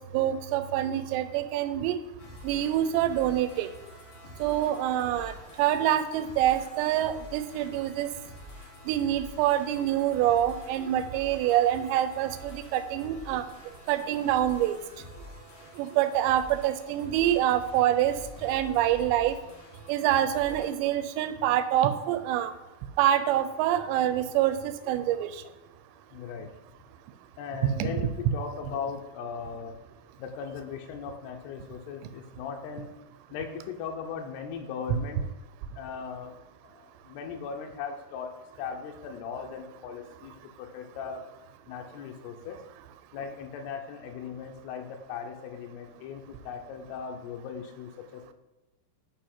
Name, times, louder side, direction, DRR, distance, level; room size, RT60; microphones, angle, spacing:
voice 1, 0.1-2.0 2.4-3.7 4.4-8.1 8.9-13.5 13.9-14.8 15.8-18.2 18.4-19.4 19.9-22.5 23.0-25.3 27.8-27.9, right 12 dB, 85° right, 11 dB, 2.7 m, -26 dB
sound 1, 2.2-20.7, left 2 dB, 60° left, 1.8 m, -47 dB
voice 2, 26.1-26.5 27.4-29.8 30.2-32.9 33.3-35.2 35.8-36.3 36.6-41.2 41.7-42.6 43.1-48.3, left 6 dB, 80° left, 4 dB, 2.6 m, -38 dB
7.6 x 5.4 x 4.3 m, 1.1 s
omnidirectional pair, 5.0 m